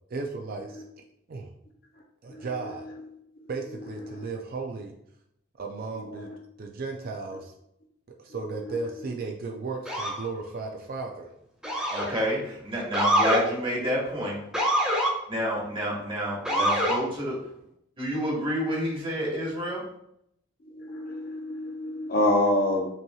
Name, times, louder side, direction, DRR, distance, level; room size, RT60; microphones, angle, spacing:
voice 1, 0.1-0.8 1.3-1.5 2.2-2.9 3.5-4.9 5.6-6.3 6.6-7.5 8.2-11.3, right 4 dB, 45° right, 2 dB, 0.4 m, -35 dB
Motor vehicle (road) / Siren, 9.9-10.2 11.6-12.2 12.9-13.4 14.5-15.1 16.5-17.0, equal, 5° right, 0.8 m, -24 dB
voice 2, 11.9-14.4 15.3-17.4 18.0-19.8, equal, 25° right, -4 dB, 1.3 m, -29 dB
voice 3, 20.7-22.9, left 1 dB, 45° left, 1 dB, 0.7 m, -27 dB
5.5 x 2.9 x 2.3 m, 0.75 s
head